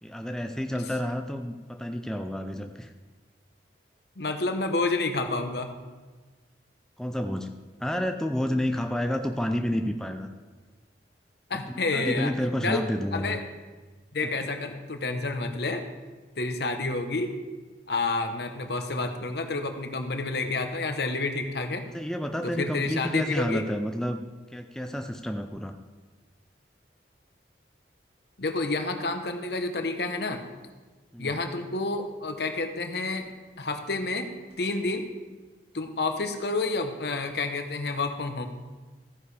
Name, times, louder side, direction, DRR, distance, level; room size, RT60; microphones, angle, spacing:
voice 1, 0.0-2.9 7.0-7.5 7.8-10.3 11.7-13.4 21.9-24.3 24.5-25.7 31.1-31.3, equal, 5° left, 5 dB, 0.4 m, -30 dB
voice 2, 4.2-5.7 11.5-12.3 12.6-12.8 13.1-13.4 14.1-15.8 16.4-17.4 17.9-21.8 22.4-23.6 28.4-30.4 31.2-33.3 33.6-34.3 34.6-35.1 35.7-38.5, left 3 dB, 65° left, 6 dB, 1.0 m, -29 dB
14.5 x 9.7 x 3.3 m, 1.3 s
head